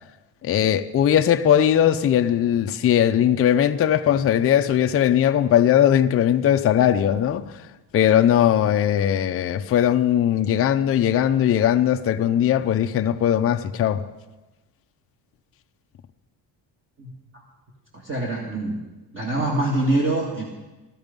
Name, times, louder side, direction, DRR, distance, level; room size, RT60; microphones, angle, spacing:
voice 1, 0.4-7.4 7.9-14.0, left 10 dB, 35° left, 0.6 m, -19 dB
voice 2, 17.0-17.4 17.9-18.8 19.1-20.4, right 2 dB, 30° right, 2.0 m, -25 dB
17.5 x 13.0 x 5.2 m
cardioid pair, 150°, 41 cm